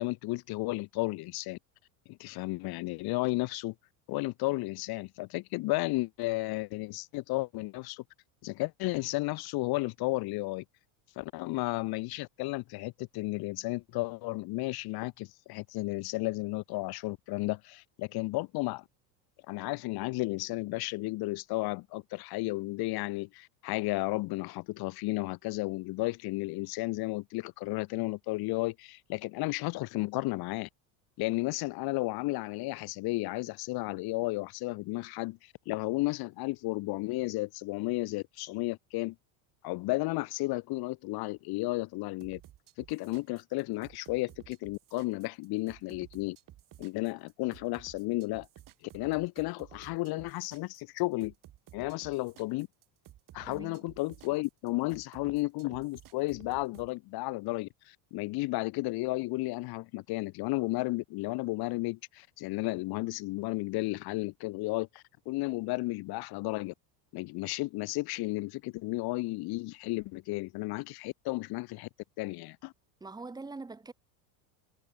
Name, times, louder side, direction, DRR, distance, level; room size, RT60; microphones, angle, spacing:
voice 1, 0.0-1.6 2.1-3.7 4.1-8.0 8.4-10.6 11.2-18.8 19.5-30.7 31.2-39.1 39.6-42.4 42.8-46.4 46.8-48.5 48.8-51.3 51.7-52.7 53.3-66.7 67.1-71.9 72.2-72.7, left 21 dB, 50° left, 1.0 m, -33 dB
sound 1, 42.2-56.9, right 13 dB, 40° right, 2.9 m, -54 dB
voice 2, 53.5-53.9 73.0-73.9, right 3 dB, 10° right, 1.1 m, -43 dB
supercardioid pair, 130°, 49 cm